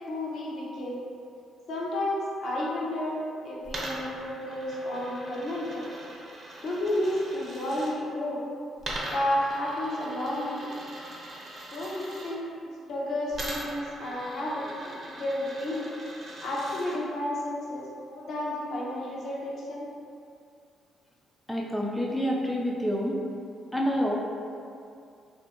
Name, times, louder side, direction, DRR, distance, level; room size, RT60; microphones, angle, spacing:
voice 1, 0.1-1.0 1.7-5.9 6.6-8.4 9.1-10.8 11.7-12.5 12.9-15.9 16.4-19.9, left 1 dB, 65° left, -5 dB, 0.7 m, -31 dB
Coin (dropping), 3.6-7.9 8.8-12.3 13.3-17.0, right 1 dB, 45° right, 0.7 m, -40 dB
voice 2, 21.5-23.2 23.7-24.2, equal, 5° left, -2 dB, 0.3 m, -27 dB
3.0 x 2.5 x 2.9 m, 2.4 s
cardioid pair, 90°, 0 cm